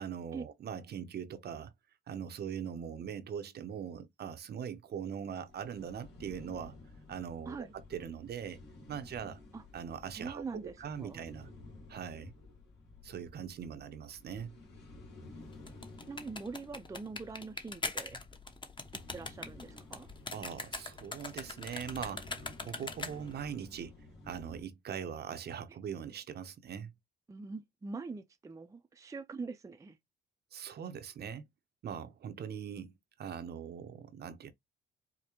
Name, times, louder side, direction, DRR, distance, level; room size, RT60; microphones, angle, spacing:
voice 1, 0.0-1.7 2.1-6.7 7.1-8.6 8.9-9.4 9.7-11.5 11.9-12.3 13.0-14.6 20.3-24.0 24.3-26.9 30.5-31.5 31.8-34.5, right 8 dB, 55° right, 0.7 m, -41 dB
sound 1, 5.5-24.6, left 2 dB, 60° left, 1.8 m, -53 dB
voice 2, 10.2-11.2 16.1-18.2 19.1-20.1 27.3-30.0, right 4 dB, 15° right, 0.5 m, -43 dB
sound 2, 15.5-23.4, left 3 dB, 25° left, 0.9 m, -41 dB
4.9 x 2.1 x 2.9 m
cardioid pair, 90°, 20 cm